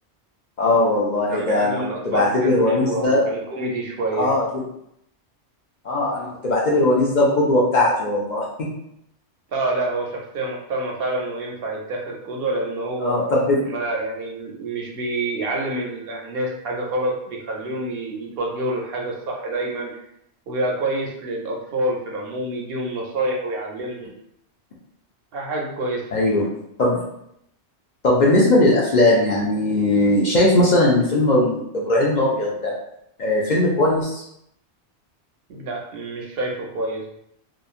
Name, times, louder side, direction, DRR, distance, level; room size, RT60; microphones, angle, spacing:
voice 1, 0.6-3.2 4.2-4.4 5.8-8.5 13.0-13.6 26.1-26.4 26.8-27.0 28.0-32.7 33.2-34.2, left 1 dB, 55° left, -4 dB, 0.6 m, -19 dB
voice 2, 1.3-4.3 9.5-13.1 13.7-19.9 20.5-24.1 25.3-26.0 35.5-37.1, right 2 dB, 65° right, -1 dB, 0.7 m, -27 dB
2.9 x 2.3 x 2.3 m, 0.76 s
omnidirectional pair, 1.1 m